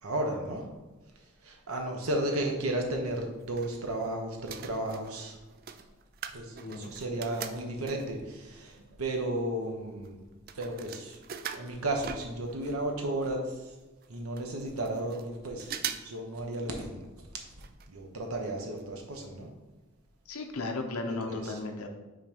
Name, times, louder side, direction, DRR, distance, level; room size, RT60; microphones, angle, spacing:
voice 1, 0.0-0.7 1.4-5.4 6.3-10.2 10.5-11.2 11.5-13.7 14.1-17.1 17.9-19.5 21.2-21.6, right 1 dB, 85° right, 2 dB, 1.1 m, -34 dB
sound 1, 3.2-4.1 4.4-8.3 8.9-9.0 9.2-12.8 13.1-13.2 13.3-13.4 14.0-14.1 14.4-15.3 15.6-16.2 16.5-16.6 17.6-17.9 18.2-18.3 18.8-18.9 19.2-19.3, right 8 dB, 40° right, 0.3 m, -42 dB
voice 2, 6.6-6.9 20.3-21.9, left 2 dB, 90° left, 4 dB, 0.8 m, -35 dB
5.9 x 3.3 x 5.1 m, 1.2 s
head